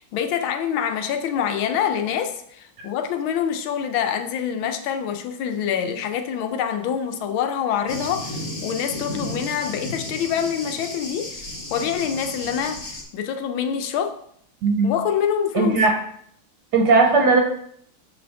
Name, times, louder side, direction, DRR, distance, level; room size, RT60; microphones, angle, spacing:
voice 1, 0.0-12.8 13.1-14.2 14.8-15.8, left 8 dB, 80° left, 7 dB, 1.5 m, -26 dB
Thunder, 7.9-13.0, left 1 dB, 45° left, 1.2 m, -33 dB
voice 2, 14.6-14.9 15.5-15.9 16.7-17.4, right 3 dB, 60° right, 2 dB, 1.3 m, -17 dB
6.6 x 5.1 x 3.4 m, 0.66 s
omnidirectional pair, 2.3 m